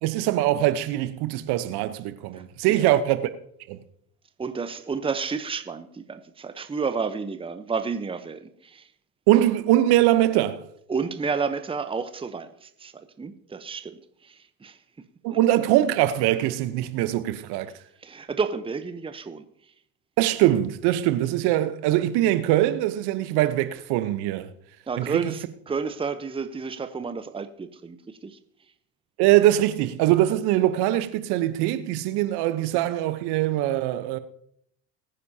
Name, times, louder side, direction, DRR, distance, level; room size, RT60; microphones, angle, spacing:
voice 1, 0.0-3.3 3.7-3.8 9.3-10.6 15.2-17.7 20.2-24.5 25.0-25.3 29.2-34.2, right 14 dB, 60° right, 1.0 m, -22 dB
voice 2, 4.4-8.8 10.9-12.9 13.2-14.8 18.0-19.4 24.9-28.0 28.2-28.4, right 5 dB, 10° right, 0.9 m, -31 dB
21.5 x 9.6 x 2.8 m
hypercardioid pair, 80°, 45 cm